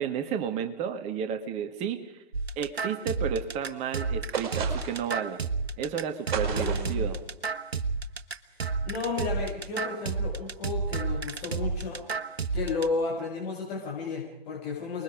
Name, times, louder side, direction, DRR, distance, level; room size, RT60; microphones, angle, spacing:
voice 1, 0.0-2.2 2.6-5.4 5.8-7.2, right 8 dB, 20° right, 8 dB, 1.6 m, -32 dB
sound 1, 2.3-12.9, right 4 dB, 80° right, 1.3 m, -31 dB
sound 2, 4.3-5.1 6.3-7.0, right 7 dB, 50° right, 5.3 m, -33 dB
voice 2, 6.5-7.1 8.8-12.0 12.5-15.0, left 4 dB, 40° left, -4 dB, 6.5 m, -33 dB
29.0 x 21.5 x 5.0 m, 0.81 s
figure-of-eight pair, 125°, 31 cm